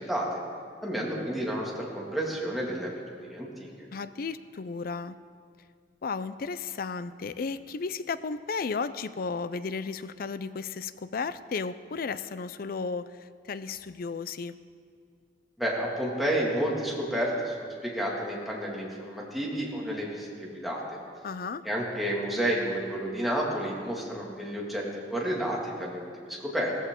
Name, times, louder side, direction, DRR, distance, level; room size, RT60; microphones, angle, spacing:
voice 1, 0.8-3.7 15.6-21.0 21.6-24.8 25.1-26.7, right 1 dB, ahead, -4 dB, 2.2 m, -31 dB
voice 2, 3.9-5.2 6.0-14.6 21.2-21.6, left 4 dB, 55° left, 14 dB, 0.5 m, -34 dB
16.5 x 14.5 x 3.7 m, 2.2 s
head